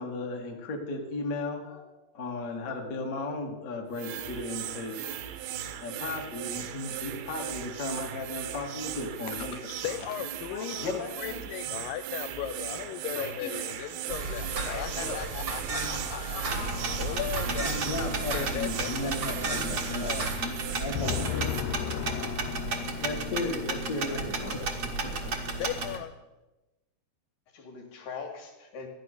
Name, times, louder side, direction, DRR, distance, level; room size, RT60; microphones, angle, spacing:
voice 1, 0.0-5.1 5.8-9.6 17.3-21.9 23.0-24.7 25.0-25.3, left 2 dB, 35° left, 1 dB, 1.4 m, -35 dB
sound 1, 3.9-21.6, right 10 dB, 85° right, 2.9 m, -38 dB
voice 2, 9.3-10.9 11.2-16.4 17.0-17.8 18.3-19.6 19.9-20.3 20.7-23.2 25.5-26.1, left 12 dB, 85° left, 8 dB, 2.0 m, -36 dB
voice 3, 10.5-11.4 12.7-12.8 13.1-13.5 14.1-14.4 14.7-15.2 15.7-17.2 21.0-21.2 27.5-28.9, left 4 dB, 60° left, 3 dB, 3.4 m, -39 dB
sound 2, 14.1-20.4, right 3 dB, 50° right, 1.0 m, -34 dB
sound 3, 16.5-26.0, right 2 dB, 70° right, 0.9 m, -34 dB
14.5 x 10.5 x 6.7 m, 1.0 s
omnidirectional pair, 4.5 m